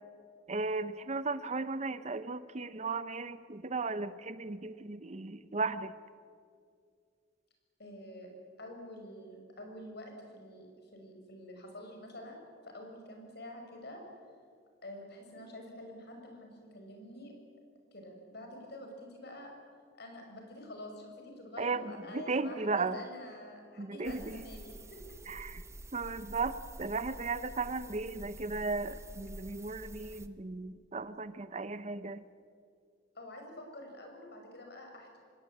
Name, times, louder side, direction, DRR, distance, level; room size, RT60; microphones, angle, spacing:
voice 1, 0.5-5.9 21.6-23.0 23.8-24.4 25.3-25.6 25.9-32.2, right 3 dB, 35° right, 14 dB, 0.8 m, -36 dB
voice 2, 7.8-8.3 8.6-14.0 14.8-17.3 17.9-19.5 20.0-25.2 33.1-35.2, left 1 dB, 60° left, 3 dB, 6.0 m, -48 dB
sound 1, 24.0-30.3, right 1 dB, 15° right, 1.0 m, -48 dB
26.0 x 20.0 x 8.6 m, 2.2 s
head